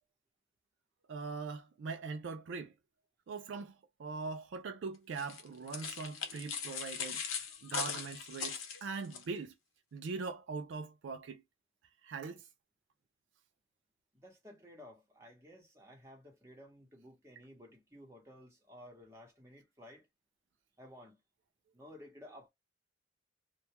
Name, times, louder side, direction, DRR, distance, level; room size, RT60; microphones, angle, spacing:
voice 1, 1.1-2.7 3.3-3.7 4.0-7.2 7.6-9.5 9.9-11.4 12.0-12.4, right 4 dB, 65° right, 0.4 m, -41 dB
sound 1, 5.2-9.2, left 6 dB, 85° left, 0.7 m, -40 dB
voice 2, 14.1-20.1 20.8-21.2 21.7-22.5, left 1 dB, 15° right, 0.9 m, -55 dB
2.3 x 2.1 x 2.9 m
head